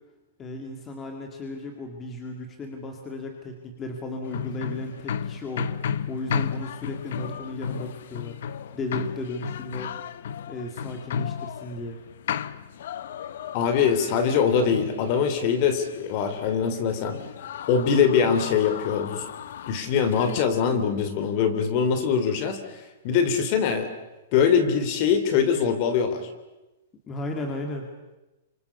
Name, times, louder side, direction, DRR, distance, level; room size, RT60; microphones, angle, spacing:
voice 1, 0.4-5.7 6.1-8.4 8.7-9.9 10.5-12.0 27.1-27.9, left 1 dB, 15° left, 3 dB, 2.2 m, -35 dB
sound 1, 4.2-20.4, left 8 dB, 55° left, 1.0 m, -34 dB
voice 2, 13.5-17.2 17.7-19.2 19.7-22.8 23.0-23.9 24.3-26.3, left 6 dB, 30° left, 9 dB, 3.0 m, -23 dB
29.5 x 26.5 x 6.9 m, 1.0 s
hypercardioid pair, 175°, 0 cm